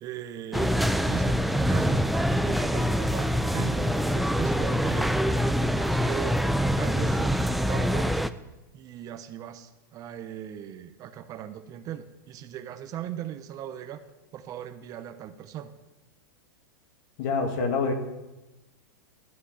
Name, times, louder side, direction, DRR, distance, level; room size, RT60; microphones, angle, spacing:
voice 1, 0.0-2.1 2.4-6.4 6.8-8.2 8.7-14.1 14.3-15.7, right 10 dB, 30° right, 9 dB, 0.8 m, -38 dB
sound 1, 0.5-8.3, equal, ahead, 0.4 m, -25 dB
voice 2, 17.2-17.9, left 4 dB, 55° left, 4 dB, 2.1 m, -26 dB
12.5 x 5.9 x 8.1 m, 1.1 s
hypercardioid pair, 135°, 11 cm